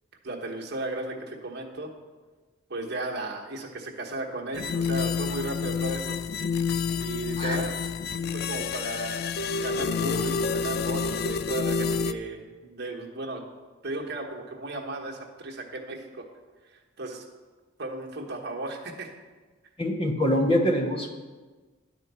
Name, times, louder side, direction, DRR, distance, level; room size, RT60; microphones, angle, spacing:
voice 1, 0.2-1.9 2.7-6.2 7.0-7.8 8.3-9.3 9.6-13.4 13.8-16.3 17.0-17.2 17.8-19.1, right 2 dB, 60° right, 0 dB, 1.2 m, -35 dB
sound 1, 4.5-12.1, left 5 dB, 55° left, 0.4 m, -28 dB
voice 2, 19.8-21.1, equal, 30° left, 3 dB, 1.0 m, -24 dB
11.0 x 4.5 x 6.8 m, 1.3 s
head